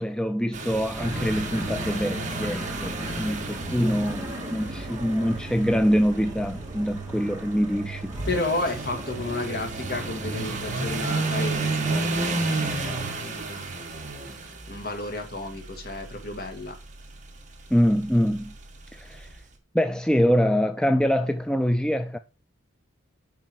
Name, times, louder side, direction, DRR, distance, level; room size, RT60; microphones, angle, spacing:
voice 1, 0.0-8.1 17.7-18.5 18.9-19.4 19.7-22.2, equal, 5° left, 0.3 m, -24 dB
sound 1, 0.5-19.4, right 3 dB, 35° right, 1.6 m, -33 dB
sound 2, 0.9-13.1, right 1 dB, 15° right, 2.1 m, -36 dB
voice 2, 8.3-13.9 14.3-16.8, left 2 dB, 45° left, 2.0 m, -32 dB
9.1 x 5.5 x 4.4 m
head